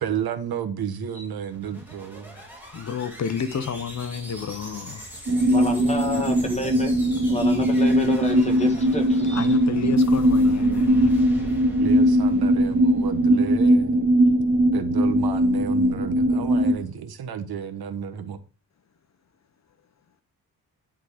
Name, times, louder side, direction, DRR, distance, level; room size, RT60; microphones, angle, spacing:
voice 1, 0.0-2.4 11.8-14.0 14.7-18.4, right 8 dB, 85° right, 1.2 m, -32 dB
sound 1, 1.3-13.6, equal, 5° right, 2.3 m, -41 dB
voice 2, 2.3-5.1 9.3-11.2, left 7 dB, 45° left, 0.8 m, -31 dB
sound 2, 5.3-16.7, equal, 35° right, 1.1 m, -20 dB
voice 3, 5.5-6.9 7.3-9.6, left 2 dB, 20° left, 1.6 m, -29 dB
10.5 x 3.8 x 4.9 m
wide cardioid pair, 170°, 37 cm